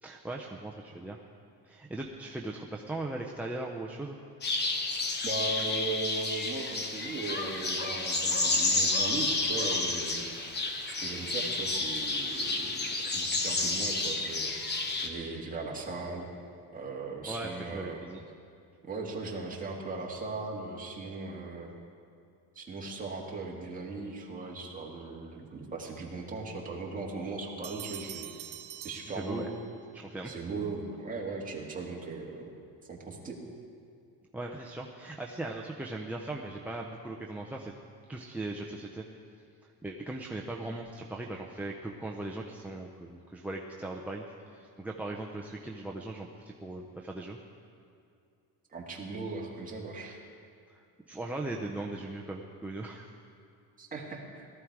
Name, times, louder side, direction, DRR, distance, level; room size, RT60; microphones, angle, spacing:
voice 1, 0.0-1.2 1.6-4.2 17.2-18.2 29.1-29.5 29.9-30.4 34.3-37.7 38.1-39.0 39.8-44.2 44.5-47.4 50.7-53.1, right 2 dB, 5° right, -2 dB, 0.5 m, -39 dB
sound 1, 4.4-15.1, left 3 dB, 25° left, 1.0 m, -30 dB
voice 2, 4.8-10.3 11.0-12.8 13.1-16.3 16.7-18.0 18.8-21.7 22.6-28.5 28.8-29.5 30.3-32.5 32.9-33.4 48.7-50.2 53.8-54.5, right 3 dB, 20° right, -2 dB, 2.0 m, -38 dB
Bell, 27.6-29.9, right 12 dB, 75° right, 1.3 m, -45 dB
18.0 x 13.0 x 4.7 m, 2.4 s
cardioid pair, 165°, 38 cm